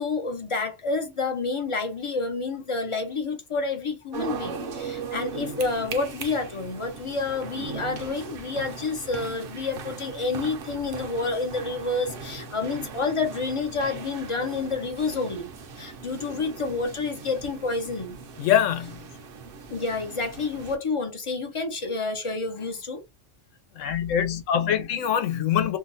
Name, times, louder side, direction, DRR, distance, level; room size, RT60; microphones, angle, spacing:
voice 1, 0.0-18.2 19.7-23.0, left 3 dB, 35° left, 0.5 m, -29 dB
sound 1, 4.1-20.8, right 5 dB, 55° right, 0.8 m, -39 dB
voice 2, 18.4-19.0 23.7-25.8, left 9 dB, 85° left, 1.0 m, -24 dB
2.7 x 2.2 x 3.9 m
omnidirectional pair, 1.3 m